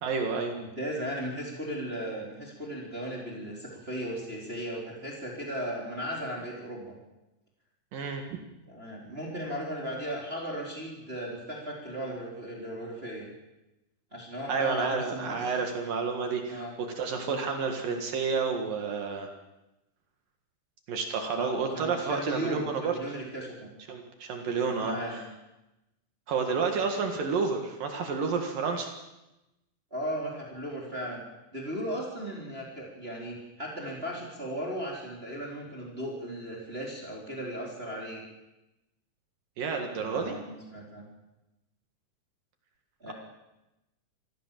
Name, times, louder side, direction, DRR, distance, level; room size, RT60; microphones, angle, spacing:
voice 1, 0.0-0.6 7.9-8.2 14.5-19.3 20.9-23.0 23.9-25.2 26.3-28.9 39.6-40.4 43.1-43.2, right 5 dB, 65° right, 4 dB, 3.3 m, -30 dB
voice 2, 0.5-7.0 8.7-13.3 14.1-15.5 16.5-16.7 17.2-17.4 21.3-23.7 24.5-25.2 29.9-31.2 31.5-38.2 40.0-41.1 43.0-43.1, equal, 15° right, -2 dB, 4.1 m, -36 dB
25.0 x 15.5 x 7.6 m, 0.98 s
omnidirectional pair, 4.5 m